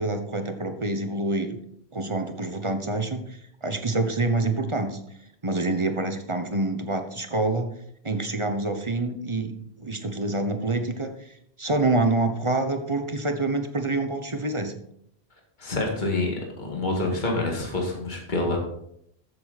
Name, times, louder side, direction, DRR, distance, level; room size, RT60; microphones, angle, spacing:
voice 1, 0.0-1.6 1.9-5.0 5.4-7.7 8.0-11.1 11.6-14.7, right 2 dB, 30° right, 6 dB, 1.1 m, -26 dB
voice 2, 15.6-16.3 16.6-18.6, left 2 dB, 45° left, 0 dB, 2.2 m, -27 dB
13.5 x 7.6 x 4.2 m, 0.72 s
omnidirectional pair, 1.1 m